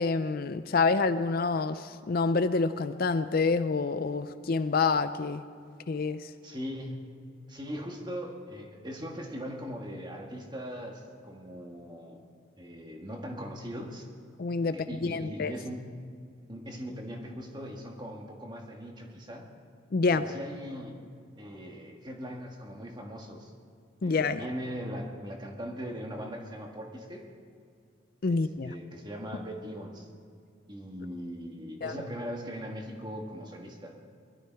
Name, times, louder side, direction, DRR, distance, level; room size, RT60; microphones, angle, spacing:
voice 1, 0.0-5.4 5.9-6.3 14.4-15.5 19.9-20.2 24.0-24.4 28.2-28.7 31.8-31.9, left 4 dB, 50° left, 11 dB, 0.4 m, -27 dB
voice 2, 6.4-7.0 7.5-12.2 12.6-14.1 14.6-15.9 16.5-19.5 20.1-20.9 21.4-23.5 24.0-27.2 28.3-28.4 28.6-30.1 30.7-34.0, equal, 20° right, 1 dB, 1.7 m, -40 dB
20.5 x 12.5 x 4.6 m, 2.3 s
head